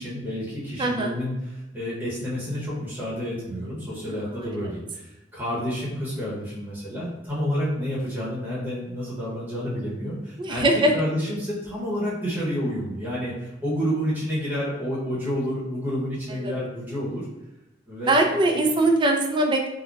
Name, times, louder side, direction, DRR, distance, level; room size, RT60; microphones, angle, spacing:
voice 1, 0.0-1.3 1.7-10.7 10.9-17.3 17.9-18.6, equal, 10° right, -9 dB, 0.8 m, -29 dB
voice 2, 0.8-1.2 4.1-4.5 10.4-10.9 16.3-16.5 18.1-19.7, right 2 dB, 25° right, 2 dB, 0.3 m, -22 dB
3.9 x 2.1 x 2.3 m, 0.98 s
head